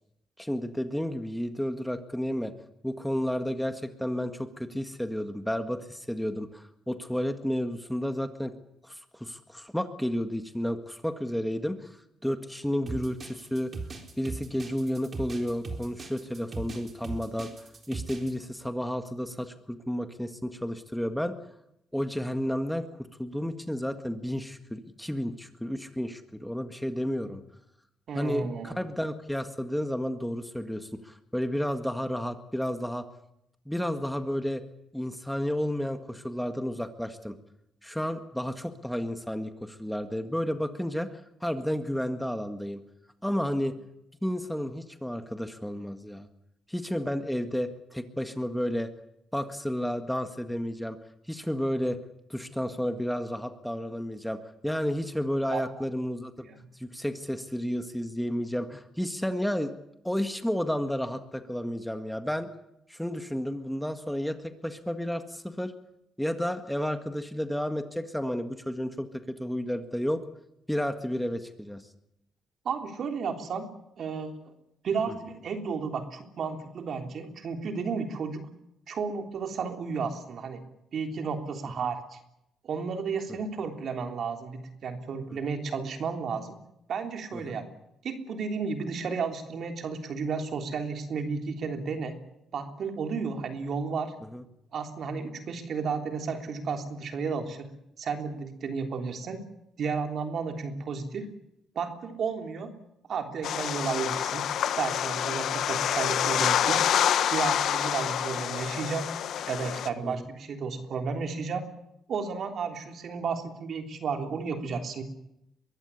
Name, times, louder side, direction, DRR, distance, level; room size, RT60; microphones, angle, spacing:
voice 1, 0.4-2.5 2.8-8.5 8.8-12.0 12.2-13.7 14.2-17.5 17.9-21.3 21.9-22.9 23.2-27.4 28.1-33.1 33.7-34.6 34.9-37.4 37.8-42.8 43.2-43.7 44.2-46.3 46.7-48.9 49.3-51.0 51.3-52.0 52.3-56.3 56.8-59.7 60.0-62.5 62.9-65.7 66.2-70.2 70.7-71.8 75.1-75.2 85.3-85.4 87.3-87.6 94.3-94.4 110.0-110.3, equal, ahead, 8 dB, 1.8 m, -31 dB
sound 1, 12.9-18.3, right 4 dB, 40° right, 4.1 m, -38 dB
voice 2, 28.1-28.7 55.5-55.8 56.4-56.6 72.6-73.7 74.0-74.5 74.8-78.4 78.9-80.6 80.9-82.2 82.6-86.6 86.9-87.7 88.0-92.1 92.5-94.1 94.7-97.7 98.0-99.4 99.8-101.3 101.7-102.7 103.1-104.5 104.7-106.9 107.3-109.1 109.5-111.7 112.1-115.0, right 5 dB, 60° right, 5 dB, 3.4 m, -33 dB
sound 2, 103.4-109.9, left 10 dB, 70° left, 1.4 m, -27 dB
23.0 x 15.0 x 9.9 m, 0.82 s
cardioid pair, 90°, 0 cm